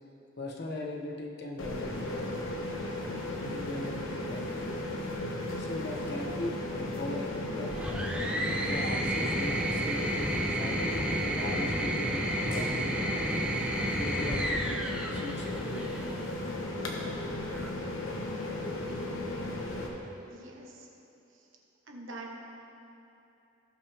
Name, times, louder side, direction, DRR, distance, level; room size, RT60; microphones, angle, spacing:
voice 1, 0.4-2.3 3.4-4.4 5.6-7.7 8.5-13.3 13.8-14.7 15.1-15.9, left 1 dB, 55° left, 0 dB, 1.1 m, -39 dB
sound 1, 1.6-19.9, left 1 dB, 85° left, 1.2 m, -35 dB
sound 2, 7.7-16.1 17.3-17.9, right 1 dB, 5° right, 0.7 m, -32 dB
voice 2, 20.3-20.9 21.9-22.4, right 2 dB, 80° right, 0 dB, 1.4 m, -44 dB
17.0 x 5.9 x 3.5 m, 2.9 s
head